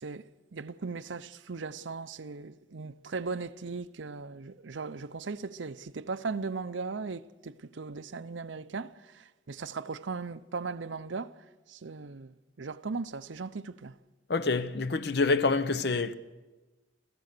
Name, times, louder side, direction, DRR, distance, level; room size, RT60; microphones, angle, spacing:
voice 1, 0.0-13.9, right 4 dB, 75° right, 0.7 m, -38 dB
voice 2, 14.3-16.1, left 3 dB, 55° left, 0.8 m, -27 dB
29.0 x 15.0 x 6.7 m
head